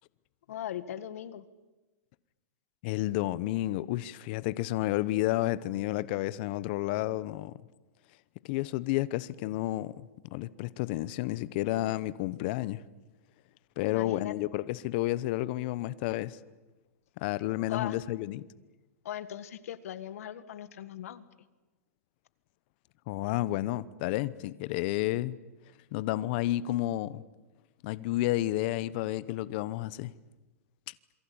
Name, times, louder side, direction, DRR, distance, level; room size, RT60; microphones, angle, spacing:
voice 1, 0.5-1.5 13.8-14.4 17.7-18.0 19.1-21.2, left 11 dB, 65° left, 1.8 m, -39 dB
voice 2, 2.8-7.6 8.4-9.9 10.3-12.8 13.8-16.4 17.2-18.4 23.1-25.4 25.9-27.2 27.8-30.1, left 16 dB, 40° left, 0.9 m, -31 dB
27.5 x 23.0 x 8.8 m
supercardioid pair, 160°, 8 cm